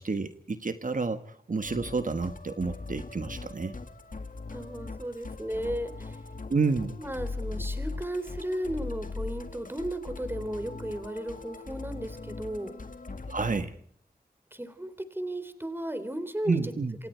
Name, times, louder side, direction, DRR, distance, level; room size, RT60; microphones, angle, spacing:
voice 1, 0.0-3.7 6.5-7.0 13.3-13.8 16.5-16.9, right 4 dB, 55° right, 9 dB, 1.3 m, -30 dB
Musical instrument, 1.6-13.6, left 3 dB, 55° left, 2.0 m, -40 dB
voice 2, 4.5-6.3 7.0-12.7 14.5-16.7, right 1 dB, 15° right, 11 dB, 3.3 m, -35 dB
27.5 x 27.0 x 4.5 m, 0.62 s
wide cardioid pair, 55°, 16 cm